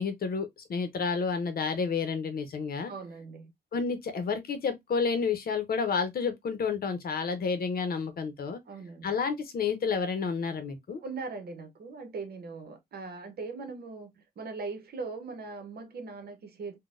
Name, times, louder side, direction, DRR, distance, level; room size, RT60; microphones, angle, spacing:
voice 1, 0.0-2.9 3.7-8.6 9.0-11.0, left 5 dB, 60° left, 0.7 m, -30 dB
voice 2, 2.9-3.5 8.7-9.2 11.0-16.8, right 4 dB, 65° right, 0.9 m, -40 dB
3.8 x 2.2 x 2.5 m
wide cardioid pair, 110°, 17 cm